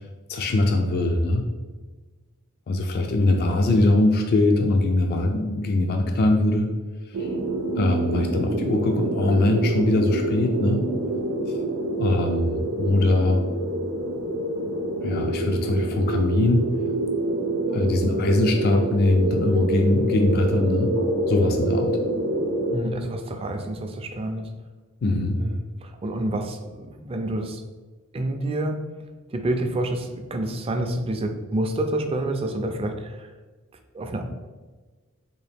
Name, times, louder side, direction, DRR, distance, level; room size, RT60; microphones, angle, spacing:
voice 1, 0.3-1.4 2.7-6.7 7.1-7.3 7.7-10.8 11.5-11.6 11.9-13.4 15.0-16.6 17.7-20.9 21.3-22.0 25.0-25.4, left 2 dB, 45° left, 4 dB, 0.3 m, -22 dB
sound 1, 7.1-22.8, right 2 dB, 85° right, 0.5 m, -27 dB
voice 2, 22.7-24.5 25.4-27.6 28.1-28.8 29.3-33.3 33.9-34.2, right 1 dB, 25° right, 5 dB, 0.3 m, -28 dB
3.9 x 2.5 x 3.3 m, 1.3 s
head